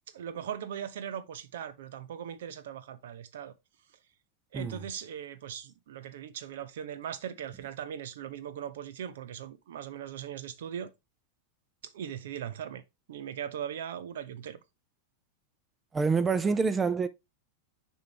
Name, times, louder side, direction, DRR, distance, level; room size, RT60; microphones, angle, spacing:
voice 1, 0.1-3.5 4.5-10.9 11.8-12.8 13.1-14.6, right 9 dB, 60° right, 0.7 m, -39 dB
voice 2, 15.9-17.1, right 5 dB, 15° right, 0.5 m, -26 dB
6.6 x 4.7 x 3.4 m
figure-of-eight pair, 90°, 0 cm